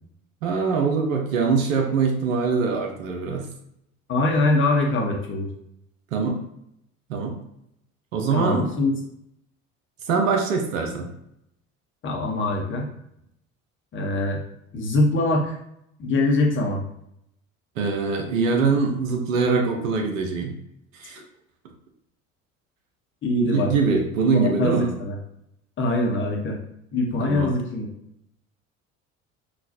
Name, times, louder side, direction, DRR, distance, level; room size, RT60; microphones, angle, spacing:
voice 1, 0.4-3.5 6.1-6.4 7.1-7.4 8.1-8.7 10.1-11.1 17.8-20.5 20.9-21.2 23.4-24.9 27.2-27.6, right 5 dB, 70° right, 2 dB, 0.7 m, -23 dB
voice 2, 4.1-5.5 8.3-8.9 12.0-12.9 13.9-14.4 14.7-15.6 16.0-16.8 23.2-23.7 24.4-25.2 25.8-26.6 26.9-27.9, left 2 dB, 30° left, 0 dB, 0.8 m, -23 dB
3.9 x 2.3 x 2.6 m, 0.76 s
figure-of-eight pair, 60°, 40 cm